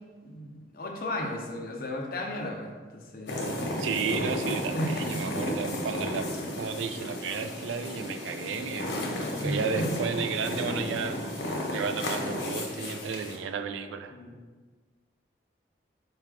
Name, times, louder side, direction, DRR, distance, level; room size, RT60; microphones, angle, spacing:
voice 1, 0.2-3.4 4.7-5.2 9.4-9.9 12.2-12.3 14.1-14.4, left 1 dB, 50° left, 1 dB, 0.6 m, -35 dB
sound 1, 3.3-13.4, left 1 dB, 80° left, 0.9 m, -33 dB
voice 2, 3.8-6.3 6.5-11.2 11.7-14.1, right 6 dB, 85° right, 8 dB, 0.3 m, -33 dB
sound 2, 4.5-8.2, right 1 dB, 5° right, 0.3 m, -43 dB
4.6 x 2.3 x 4.7 m, 1.4 s
head